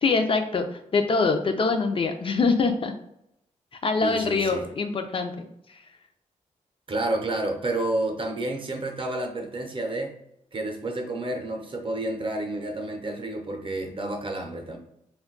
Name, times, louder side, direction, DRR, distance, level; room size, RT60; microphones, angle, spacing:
voice 1, 0.0-2.9 3.8-5.5, left 4 dB, 40° left, 6 dB, 0.3 m, -24 dB
voice 2, 4.0-4.7 6.9-10.1 10.5-14.8, right 2 dB, 40° right, 3 dB, 0.6 m, -30 dB
2.2 x 2.2 x 3.7 m, 0.80 s
cardioid pair, 70°, 13 cm